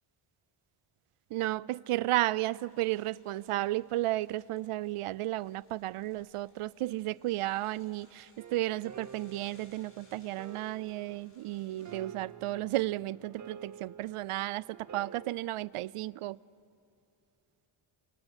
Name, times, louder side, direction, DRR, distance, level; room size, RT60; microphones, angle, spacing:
voice 1, 1.3-16.4, right 16 dB, 85° right, 0.6 m, -33 dB
sound 1, 2.6-11.9, left 2 dB, 25° left, 7.1 m, -66 dB
sound 2, 8.4-15.3, right 7 dB, 35° right, 0.7 m, -50 dB
29.0 x 25.5 x 8.1 m
wide cardioid pair, 150°, 50 cm